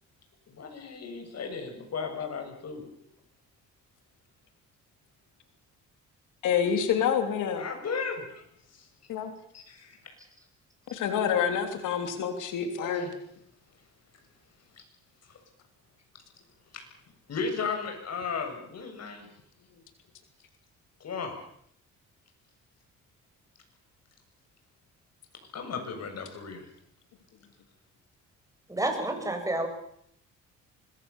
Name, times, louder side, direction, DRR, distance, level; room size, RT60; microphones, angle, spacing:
voice 1, 0.5-2.9 7.5-8.4 8.7-8.9 9.5-10.0 12.8-13.1 15.3-15.4 16.7-16.8 17.3-19.3 21.0-21.3 25.5-26.6, left 5 dB, 55° left, 5 dB, 7.7 m, -35 dB
voice 2, 6.4-7.6 9.1-9.3 10.9-13.1, left 8 dB, 85° left, 6 dB, 3.4 m, -27 dB
voice 3, 28.7-29.7, right 1 dB, 10° right, 4 dB, 7.3 m, -29 dB
25.0 x 20.5 x 7.2 m, 0.69 s
cardioid pair, 90°, 30 cm